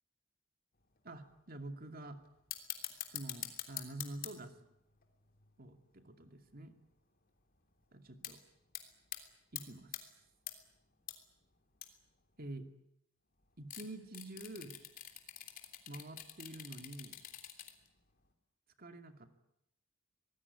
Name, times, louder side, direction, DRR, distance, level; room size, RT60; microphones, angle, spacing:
sound 1, 1.0-1.1 1.5-1.9 2.2-6.7 7.2-7.3 7.5-7.9 8.2-8.3 8.7-9.2 9.5-10.0 10.5-11.1 11.4-11.5 11.7-12.1 13.6-17.9 18.2-18.3, left 11 dB, 45° left, 3.3 m, -45 dB
voice 1, 1.0-2.2 2.9-4.5 5.6-6.8 7.9-8.4 9.5-9.9 12.4-12.7 13.6-14.8 15.9-17.2 18.8-19.3, right 1 dB, 45° right, 7 dB, 2.5 m, -47 dB
25.5 x 19.5 x 9.8 m, 0.79 s
head